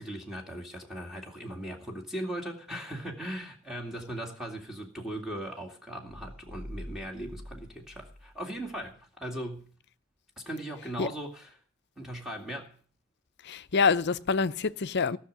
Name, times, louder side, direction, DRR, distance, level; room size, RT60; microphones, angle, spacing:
voice 1, 0.0-9.7 10.4-11.5 12.0-12.8, right 1 dB, ahead, 2.3 m, -38 dB
sound 1, 6.1-8.9, equal, 65° right, 2.8 m, -45 dB
voice 2, 13.4-15.2, left 5 dB, 50° left, 0.6 m, -26 dB
17.0 x 6.4 x 9.3 m
head